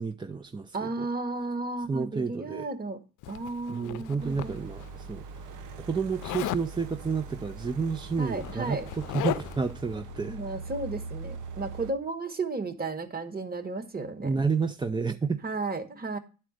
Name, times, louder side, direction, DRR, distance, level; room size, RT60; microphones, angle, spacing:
voice 1, 0.0-1.1 1.9-2.7 3.7-5.5 5.8-10.4 14.2-15.4, right 5 dB, 15° right, 0.4 m, -30 dB
voice 2, 0.7-3.0 3.3-4.6 8.2-8.9 10.3-14.3 15.4-16.2, right 3 dB, 30° right, 1.3 m, -33 dB
Zipper (clothing), 3.2-4.9 6.2-6.7 7.8-7.9 8.2-9.7, left 15 dB, 85° left, 0.5 m, -36 dB
sound 1, 4.2-11.9, right 4 dB, 90° right, 0.9 m, -42 dB
10.5 x 4.4 x 6.3 m
cardioid pair, 90°, 30 cm